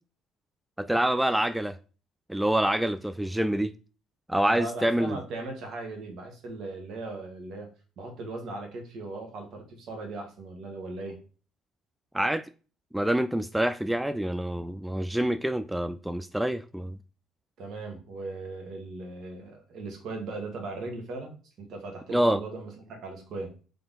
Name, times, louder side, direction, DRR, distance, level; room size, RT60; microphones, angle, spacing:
voice 1, 0.8-1.8 2.3-3.7 4.3-5.2 12.1-12.5 12.9-17.0 22.1-22.4, right 1 dB, 5° right, 0.3 m, -26 dB
voice 2, 4.5-7.7 8.0-11.2 17.6-23.6, right 3 dB, 65° right, 1.7 m, -38 dB
3.9 x 3.3 x 4.0 m
supercardioid pair, 70°, 0 cm